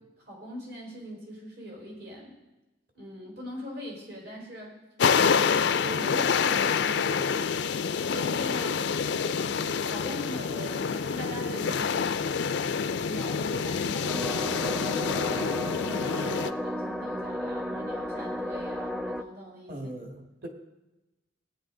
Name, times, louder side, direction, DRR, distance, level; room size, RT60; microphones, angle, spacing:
voice 1, 0.3-2.4 2.9-4.8 5.2-7.7 8.1-9.6 9.8-12.4 13.1-19.9, equal, 70° right, -3 dB, 4.5 m, -42 dB
sound 1, 5.0-16.5, left 6 dB, 70° left, 0.4 m, -27 dB
sound 2, 14.1-19.2, equal, ahead, 0.4 m, -33 dB
voice 2, 19.7-20.5, right 1 dB, 50° right, 2 dB, 1.9 m, -39 dB
18.0 x 9.0 x 3.8 m, 1.0 s
head